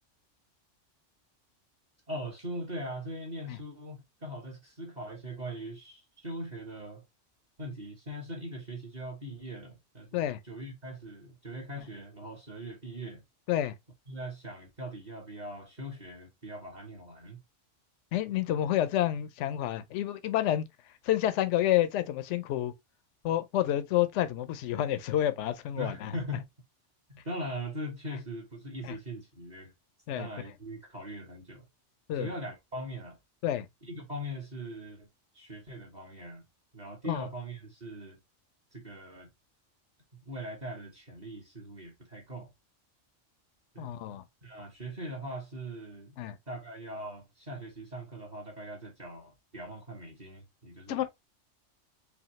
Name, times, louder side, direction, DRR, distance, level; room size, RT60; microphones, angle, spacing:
voice 1, 2.1-7.0 7.6-13.2 14.1-17.4 25.7-26.5 27.1-29.7 30.2-31.7 32.1-33.2 33.8-35.1 35.3-36.4 36.7-38.2 38.7-39.3 40.2-42.5 43.7-43.9 44.4-46.2 46.5-51.0, right 1 dB, 35° right, 1.5 m, -41 dB
voice 2, 18.1-20.7 21.0-22.7 23.2-26.1 28.8-28.9 30.1-30.3 32.1-32.3 33.4-33.7 37.1-37.3 43.8-44.2 46.2-46.4 50.9-51.0, left 12 dB, 75° left, 0.9 m, -29 dB
5.0 x 2.6 x 2.9 m
omnidirectional pair, 1.3 m